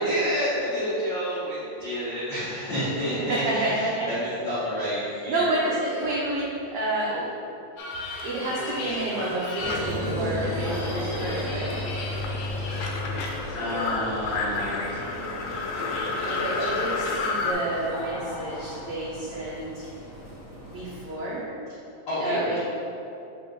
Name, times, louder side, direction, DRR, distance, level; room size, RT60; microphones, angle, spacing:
voice 1, 0.0-5.6 7.1-7.2 8.4-9.3 12.6-12.8 13.5-16.4 22.0-22.6, equal, 70° left, -12 dB, 1.1 m, -30 dB
voice 2, 3.2-4.1 5.3-7.1 8.2-11.8 16.2-19.9 20.6-21.4 22.2-22.6, right 2 dB, 80° right, -7 dB, 1.5 m, -29 dB
sound 1, 7.8-10.5 10.8-17.5, left 3 dB, 85° left, 2.5 m, -32 dB
sound 2, 9.6-21.0, left 1 dB, 45° left, 1.6 m, -34 dB
7.9 x 3.5 x 3.8 m, 2.8 s
omnidirectional pair, 4.2 m